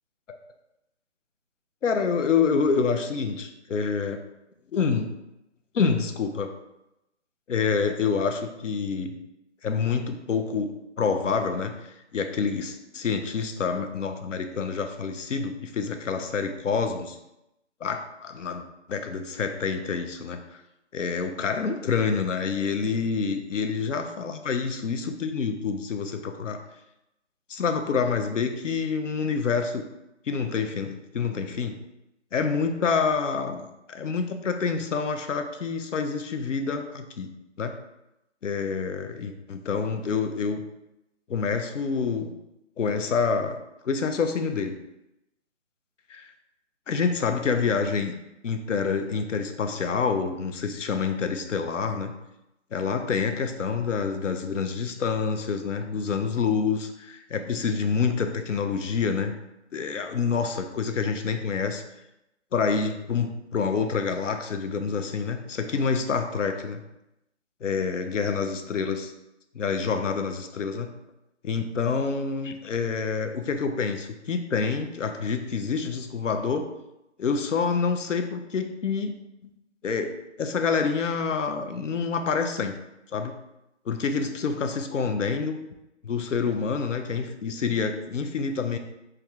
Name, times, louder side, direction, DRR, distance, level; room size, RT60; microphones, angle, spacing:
voice 1, 1.8-4.2 4.7-5.1 5.7-6.5 7.5-9.1 9.6-11.7 12.1-17.2 17.8-18.6 18.9-20.4 20.9-26.6 27.5-29.8 30.3-31.8 32.3-37.8 38.4-40.6 41.3-42.3 42.8-43.6 43.8-44.7 46.1-46.3 46.9-48.1 48.4-52.1 52.7-59.3 59.7-61.8 62.5-66.8 67.6-69.1 69.5-70.9 71.4-76.7 77.2-79.1 79.8-82.8 83.1-83.4 83.9-85.6 86.0-88.8, left 5 dB, 80° left, 7 dB, 0.6 m, -27 dB
6.2 x 2.3 x 2.4 m, 0.89 s
hypercardioid pair, 170°, 37 cm